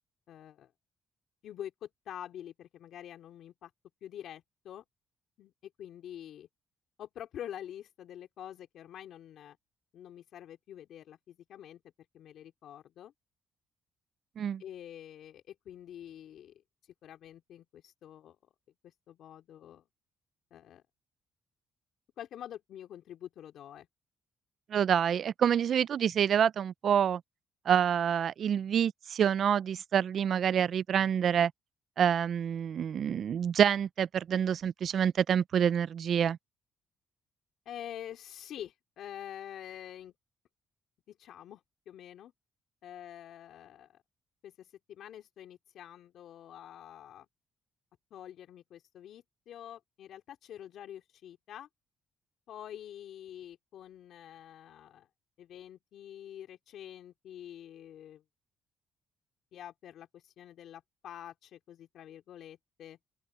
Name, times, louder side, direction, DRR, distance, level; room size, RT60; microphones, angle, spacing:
voice 1, 0.3-0.7 1.4-3.7 4.0-4.8 5.4-6.5 7.0-9.6 9.9-11.8 12.1-13.1 14.6-16.6 17.0-18.5 18.8-19.8 20.5-20.8 22.2-23.9 37.6-40.1 41.1-42.3 42.8-44.0 44.4-47.3 48.1-51.7 52.5-55.1 55.4-58.2 59.5-63.0, left 10 dB, 75° left, 3.2 m, -47 dB
voice 2, 24.7-27.2 27.7-31.5 32.0-36.4, right 8 dB, 60° right, 0.4 m, -27 dB
cardioid pair, 90°, 0 cm